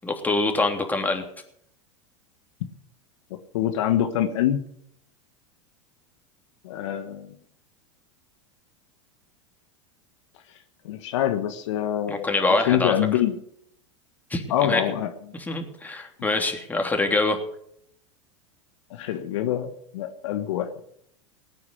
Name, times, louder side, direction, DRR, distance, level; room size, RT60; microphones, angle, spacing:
voice 1, 0.0-1.2 12.1-12.9 14.3-14.8 15.3-17.4, left 2 dB, 10° left, 3 dB, 3.2 m, -25 dB
voice 2, 3.5-4.6 6.6-7.4 10.8-13.3 14.5-15.1 18.9-20.7, left 11 dB, 70° left, 7 dB, 1.5 m, -25 dB
18.5 x 9.5 x 6.6 m, 0.68 s
hypercardioid pair, 95°, 16 cm